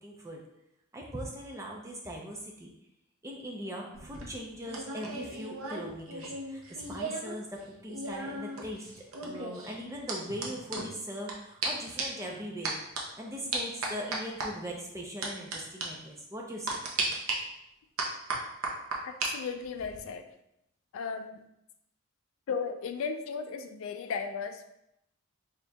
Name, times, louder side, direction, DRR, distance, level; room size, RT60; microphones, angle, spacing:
voice 1, 0.0-0.4 0.9-2.7 3.2-12.8 13.2-16.8, equal, 15° right, -1 dB, 0.5 m, -40 dB
sound 1, 3.9-7.4 7.6-11.3 11.6-11.7 12.0-12.2 12.6-13.0 13.5-14.5 15.2-15.6 15.8-15.9 16.7-17.3 18.0-19.3 19.6-20.0, right 3 dB, 85° right, 0.7 m, -35 dB
voice 2, 19.0-20.2 20.9-21.4 22.5-24.7, left 5 dB, 75° left, 7 dB, 0.3 m, -35 dB
4.2 x 3.6 x 2.2 m, 0.82 s
head